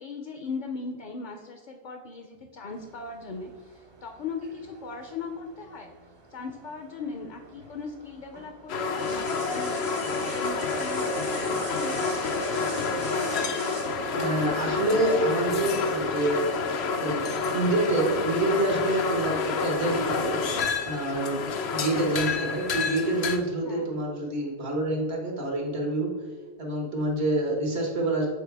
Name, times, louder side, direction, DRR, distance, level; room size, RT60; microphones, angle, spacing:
voice 1, 0.0-5.9 6.3-13.1 14.3-15.3 23.1-23.3 23.6-23.9, left 4 dB, 55° left, 5 dB, 0.6 m, -39 dB
sound 1, 2.7-22.0, right 3 dB, 35° right, 0.5 m, -47 dB
sound 2, 8.7-23.4, left 4 dB, 85° left, 0.9 m, -29 dB
voice 2, 14.1-16.5 17.0-20.4 20.9-26.1 26.6-28.3, right 1 dB, 85° right, -1 dB, 1.7 m, -27 dB
7.9 x 4.0 x 3.4 m, 1.5 s
omnidirectional pair, 1.1 m